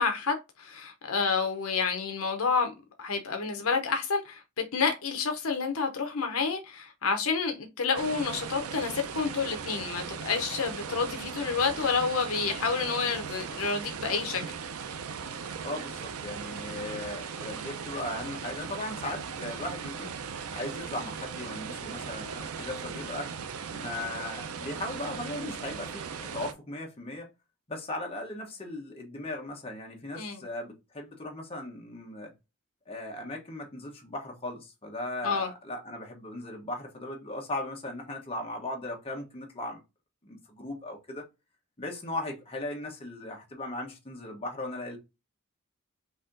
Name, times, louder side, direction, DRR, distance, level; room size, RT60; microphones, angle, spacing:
voice 1, 0.0-2.7 3.0-4.4 4.7-14.4 30.2-30.4 35.2-35.5, left 5 dB, 70° left, 0.8 m, -29 dB
sound 1, 7.9-26.5, right 6 dB, 80° right, 0.5 m, -38 dB
voice 2, 15.6-20.2 20.5-23.3 23.7-27.3 27.7-32.3 32.9-39.8 40.2-41.2 41.8-45.0, left 1 dB, 25° left, 1.1 m, -37 dB
4.1 x 2.8 x 3.7 m
head